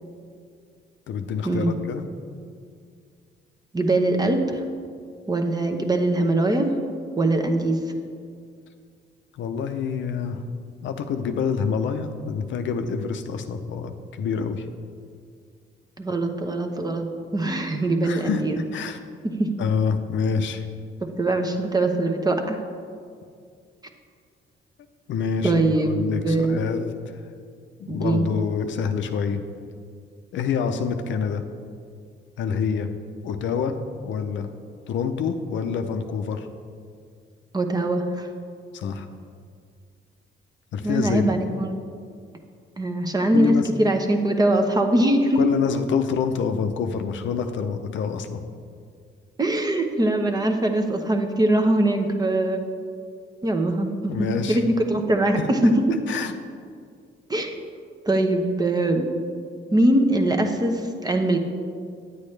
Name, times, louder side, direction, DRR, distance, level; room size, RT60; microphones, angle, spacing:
voice 1, 1.1-2.0 9.3-10.4 10.8-14.7 18.0-19.0 19.6-20.6 25.1-26.9 27.8-29.4 30.3-31.4 32.4-32.9 33.2-33.8 34.0-34.5 34.9-36.5 38.7-39.0 40.7-41.3 43.3-43.7 45.4-48.4 54.1-54.6 55.4-55.5 56.1-56.3, left 6 dB, 70° left, 7 dB, 0.6 m, -26 dB
voice 2, 3.7-4.6 5.3-6.7 7.2-7.8 16.0-17.1 17.3-18.6 19.2-19.5 21.0-22.6 25.4-26.6 27.9-28.3 37.5-38.3 40.8-41.8 42.8-45.4 49.4-52.6 53.4-55.7 57.3-57.5 58.1-59.1 59.7-61.4, right 1 dB, 20° right, 4 dB, 0.8 m, -22 dB
9.5 x 8.4 x 3.3 m, 2.2 s
cardioid pair, 90°, 20 cm